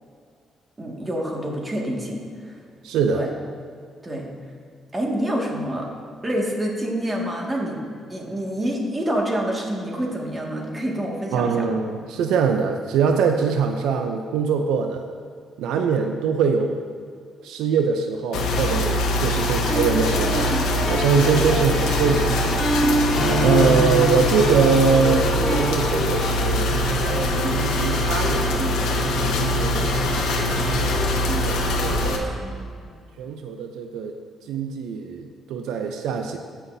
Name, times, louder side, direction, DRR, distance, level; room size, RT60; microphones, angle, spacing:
voice 1, 0.8-2.5 3.1-3.3 4.0-4.3 4.9-5.9 6.2-11.7 32.2-32.9, equal, 20° right, -1 dB, 1.9 m, -27 dB
voice 2, 2.8-3.2 11.3-15.0 15.6-16.8 17.4-20.5 20.9-22.6 22.9-26.7 27.1-30.9 31.4-32.3 33.2-34.2 34.5-36.4, right 6 dB, 90° right, 5 dB, 0.5 m, -23 dB
sound 1, 18.3-32.2, left 1 dB, 85° left, 1.0 m, -23 dB
sound 2, 19.7-25.7, left 1 dB, 45° left, 2.2 m, -25 dB
sound 3, 20.1-32.4, right 2 dB, 75° right, 2.1 m, -32 dB
16.0 x 5.7 x 2.7 m, 2.2 s
cardioid pair, 90°, 0 cm